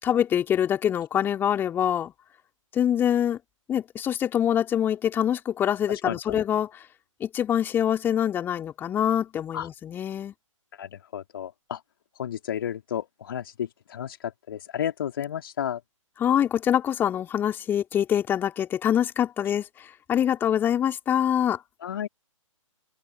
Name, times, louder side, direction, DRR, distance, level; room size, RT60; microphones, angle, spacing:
voice 1, 0.0-2.1 2.7-3.4 3.7-6.8 7.2-10.3 16.2-21.6, left 9 dB, 10° left, 3.9 m, -25 dB
voice 2, 6.0-6.4 9.5-9.7 10.8-11.8 12.2-14.2 14.5-15.8 21.8-22.1, left 9 dB, 40° left, 2.9 m, -32 dB
open air
figure-of-eight pair, 130°, 17 cm